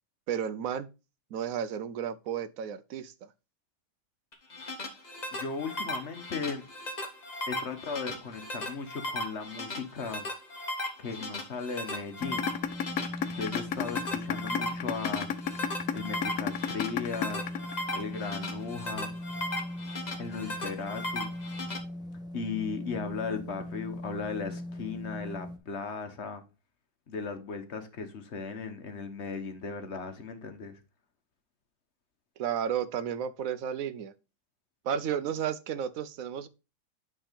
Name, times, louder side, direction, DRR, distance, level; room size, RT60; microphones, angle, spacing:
voice 1, 0.3-0.9 1.3-3.3 32.4-34.1 34.8-36.5, right 8 dB, 75° right, 1.1 m, -33 dB
sound 1, 4.3-21.8, left 1 dB, 35° left, 1.1 m, -37 dB
voice 2, 5.3-6.6 7.5-10.3 11.0-12.5 13.3-15.3 15.9-17.5 17.9-19.1 20.2-21.3 22.3-26.4 27.1-30.8, left 5 dB, 55° left, 1.3 m, -37 dB
sound 2, 12.2-18.2, left 9 dB, 75° left, 1.1 m, -30 dB
sound 3, 12.2-25.6, left 1 dB, 5° right, 0.8 m, -40 dB
8.7 x 3.7 x 5.1 m
omnidirectional pair, 1.5 m